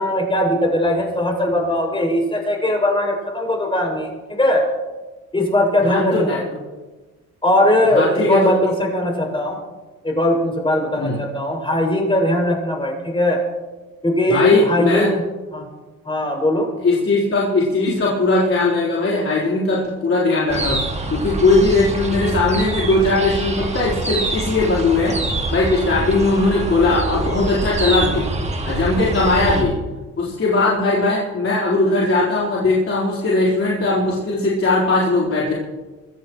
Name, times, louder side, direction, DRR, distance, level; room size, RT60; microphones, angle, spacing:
voice 1, 0.0-4.7 5.3-6.4 7.4-9.6 10.0-13.4 14.0-15.2 15.5-15.7 16.0-16.7, left 1 dB, 15° left, 0 dB, 6.4 m, -19 dB
voice 2, 5.8-6.4 7.9-8.5 11.0-11.2 14.3-15.1 16.8-25.2 25.5-28.3 28.6-29.8 30.2-35.5, left 2 dB, 45° left, -6 dB, 4.0 m, -19 dB
sound 1, 20.5-29.6, right 2 dB, 20° right, 2.1 m, -25 dB
24.0 x 15.5 x 3.1 m, 1.2 s
cardioid pair, 90°, 30 cm